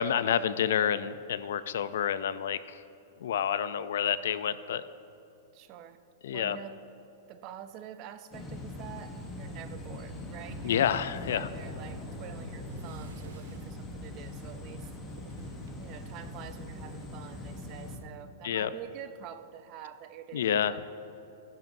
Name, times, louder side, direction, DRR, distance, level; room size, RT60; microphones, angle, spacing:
voice 1, 0.0-2.8 3.2-4.8 6.2-6.6 10.6-11.5 18.4-18.7 20.3-20.7, left 9 dB, 65° left, 14 dB, 0.4 m, -29 dB
voice 2, 5.5-6.0 6.3-6.8 7.3-14.9 15.8-20.9, right 10 dB, 25° right, 11 dB, 0.4 m, -47 dB
sound 1, 8.3-18.0, left 1 dB, 10° left, 0.9 m, -41 dB
sound 2, 10.6-11.8 12.4-13.9 14.7-15.9 16.8-17.1, right 6 dB, 80° right, 0.7 m, -53 dB
15.0 x 10.5 x 2.6 m, 2.8 s
supercardioid pair, 180°, 0 cm